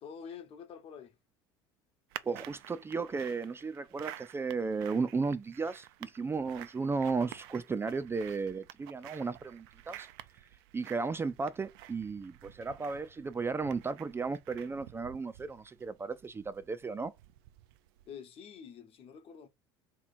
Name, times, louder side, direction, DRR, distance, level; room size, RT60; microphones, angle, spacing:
voice 1, 0.0-1.2 18.1-19.5, left 7 dB, 50° left, 1.0 m, -47 dB
sound 1, 2.1-18.1, right 15 dB, 75° right, 0.5 m, -51 dB
voice 2, 2.2-10.1 10.7-17.1, right 4 dB, 20° right, 0.4 m, -34 dB
3.1 x 3.0 x 4.1 m
hypercardioid pair, 90°, 13 cm